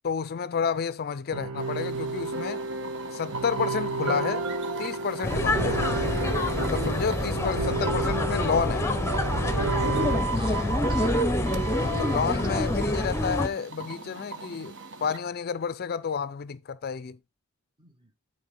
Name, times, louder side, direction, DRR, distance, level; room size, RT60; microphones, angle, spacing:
voice 1, 0.0-2.6 3.1-4.4 4.8-5.9 6.6-8.9 11.8-14.7 15.0-17.2, left 6 dB, 45° left, 0.4 m, -30 dB
sound 1, 1.3-10.2, right 3 dB, 85° right, 1.3 m, -31 dB
sound 2, 1.6-15.2, right 4 dB, 55° right, 1.1 m, -38 dB
sound 3, 5.2-13.5, left 1 dB, 10° left, 0.9 m, -27 dB
voice 2, 7.5-7.9 10.3-11.2 11.8-13.1 17.8-18.1, right 1 dB, 20° right, 1.5 m, -43 dB
11.0 x 4.8 x 3.8 m
head